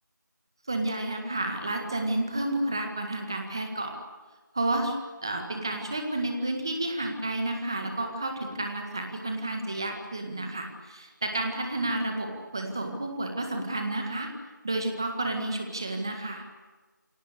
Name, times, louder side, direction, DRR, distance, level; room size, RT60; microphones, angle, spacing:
voice 1, 0.7-3.9 4.5-5.0 5.2-14.3 14.6-16.5, right 2 dB, 15° right, 4 dB, 1.8 m, -31 dB
29.0 x 23.0 x 8.2 m, 1.3 s
figure-of-eight pair, 180°, 11 cm